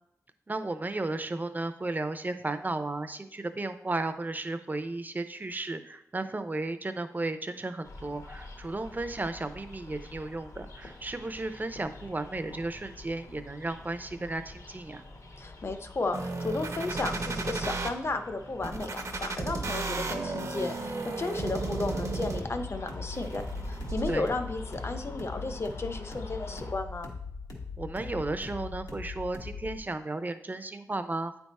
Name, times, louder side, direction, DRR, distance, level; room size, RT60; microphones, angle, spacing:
voice 1, 0.5-15.0 24.1-24.3 27.8-31.4, right 2 dB, 30° right, 9 dB, 0.6 m, -34 dB
sound 1, 7.8-26.7, left 2 dB, 65° left, 1.0 m, -47 dB
voice 2, 15.4-27.1, left 3 dB, 45° left, 7 dB, 0.7 m, -34 dB
sound 2, 16.1-17.9 18.6-22.7 23.1-24.1, right 3 dB, 60° right, 0.8 m, -34 dB
sound 3, 22.4-29.8, left 4 dB, 90° left, 1.3 m, -41 dB
9.1 x 3.5 x 4.2 m, 0.78 s
wide cardioid pair, 75°, 6 cm